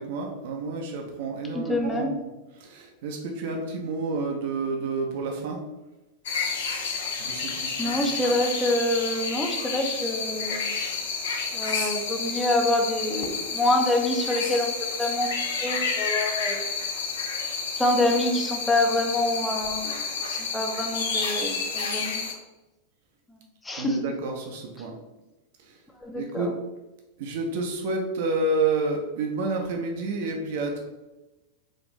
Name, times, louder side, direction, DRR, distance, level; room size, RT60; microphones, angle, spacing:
voice 1, 0.0-2.2 2.6-5.6 7.2-8.1 23.8-24.9 25.6-25.8 26.1-26.5 27.2-30.8, right 3 dB, 50° right, 1 dB, 0.6 m, -29 dB
voice 2, 1.5-2.1 7.8-10.8 11.5-14.7 15.0-15.3 15.6-16.7 17.8-22.3 23.6-24.1 26.0-26.5, left 1 dB, 10° left, 2 dB, 0.6 m, -26 dB
sound 1, 6.2-22.3, left 5 dB, 60° left, 0.6 m, -30 dB
4.1 x 2.6 x 3.1 m, 1.0 s
figure-of-eight pair, 90°, 0 cm